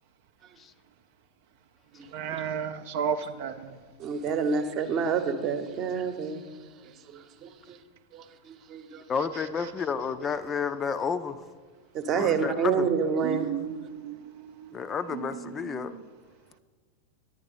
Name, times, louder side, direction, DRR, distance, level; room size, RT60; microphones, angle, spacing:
voice 1, 2.1-3.5 13.2-14.2, right 8 dB, 50° right, 9 dB, 0.5 m, -32 dB
voice 2, 4.0-6.4 7.4-7.5 8.1-8.2 8.7-9.0 11.9-13.5, right 6 dB, 35° right, 9 dB, 0.9 m, -27 dB
voice 3, 9.1-11.4 12.1-12.9 14.7-15.9, left 6 dB, 25° left, 12 dB, 0.5 m, -30 dB
10.5 x 9.0 x 5.0 m, 1.5 s
figure-of-eight pair, 90°, 0 cm